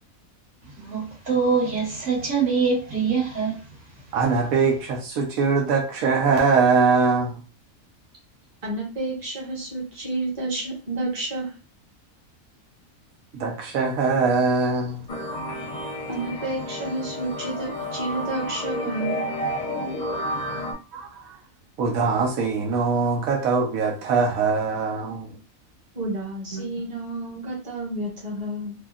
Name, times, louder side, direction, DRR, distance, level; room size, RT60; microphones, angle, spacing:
voice 1, 0.8-3.6, right 5 dB, 65° right, 1.7 m, -24 dB
voice 2, 4.1-7.3 13.3-15.1 20.9-21.1 21.8-25.4 26.5-26.6, right 4 dB, 90° right, 1.1 m, -22 dB
voice 3, 8.6-11.5 16.1-19.2 25.9-28.7, right 2 dB, 30° right, 1.1 m, -30 dB
sound 1, 15.1-20.7, left 1 dB, 45° left, 0.5 m, -31 dB
3.5 x 2.2 x 2.3 m
omnidirectional pair, 1.4 m